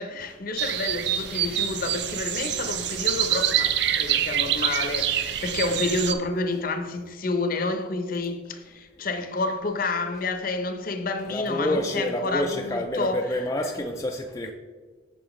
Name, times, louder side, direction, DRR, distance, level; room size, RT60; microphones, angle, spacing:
voice 1, 0.0-13.4, left 3 dB, 45° left, 0.7 m, -29 dB
sound 1, 0.6-6.1, right 10 dB, 60° right, 0.5 m, -26 dB
voice 2, 11.3-14.5, left 1 dB, 15° left, 0.4 m, -28 dB
8.7 x 6.7 x 3.1 m
head